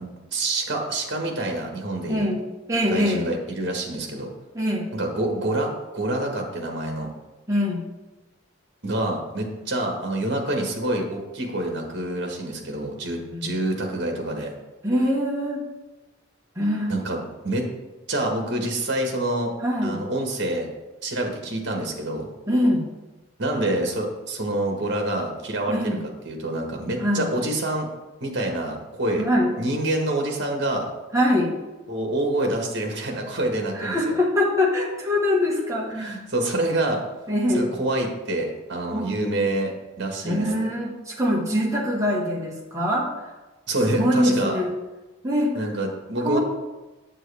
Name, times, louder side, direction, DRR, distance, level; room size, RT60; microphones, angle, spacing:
voice 1, 0.0-2.3 2.9-4.3 4.9-7.1 8.8-14.5 16.9-17.2 17.4-17.7 18.1-19.5 19.8-20.7 21.0-22.3 23.4-26.0 26.2-27.9 28.2-29.2 29.6-30.9 31.9-34.0 35.9-37.0 37.5-40.7 43.7-44.6 45.5-46.4, right 1 dB, 55° right, 1 dB, 1.6 m, -27 dB
voice 2, 2.1-2.4 2.7-3.2 4.5-4.9 7.5-7.8 13.3-13.5 14.8-15.6 16.5-17.0 19.6-20.0 22.5-22.9 25.7-26.0 27.0-27.3 29.2-29.5 31.1-31.5 33.7-36.2 37.3-37.7 38.9-39.2 40.2-43.1 44.0-44.7 45.2-45.5 46.2-46.4, left 1 dB, 15° right, -3 dB, 1.4 m, -23 dB
7.9 x 7.6 x 3.5 m, 1.1 s
head